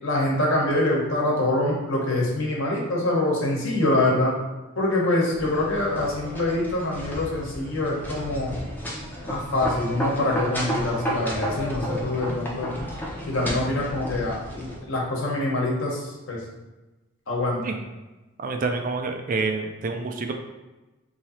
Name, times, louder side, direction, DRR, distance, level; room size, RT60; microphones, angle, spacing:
voice 1, 0.0-4.3 4.7-8.6 9.2-12.7 13.3-16.4 17.3-17.7, left 1 dB, 65° left, -2 dB, 1.1 m, -25 dB
sound 1, 5.3-14.8, equal, 10° left, 0.5 m, -33 dB
voice 2, 18.4-20.3, right 3 dB, 40° right, 5 dB, 0.3 m, -27 dB
3.1 x 2.7 x 4.2 m, 1.1 s
head